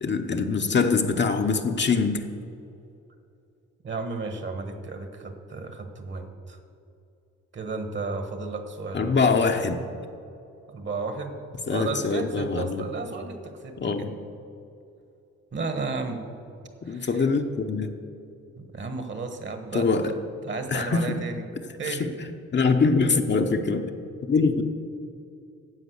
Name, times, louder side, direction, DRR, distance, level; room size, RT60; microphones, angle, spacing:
voice 1, 0.0-2.2 8.9-9.8 11.7-12.8 13.8-14.1 16.8-17.9 19.7-20.1 20.7-21.2 21.9-23.9 24.3-24.6, left 4 dB, 35° left, 5 dB, 0.9 m, -24 dB
voice 2, 3.8-6.6 7.5-9.2 10.7-11.3 11.7-14.1 15.5-16.2 16.9-17.3 18.6-21.5 21.8-22.1, right 3 dB, 40° right, 6 dB, 1.4 m, -33 dB
11.0 x 7.5 x 8.0 m, 2.7 s
cardioid pair, 90°, 30 cm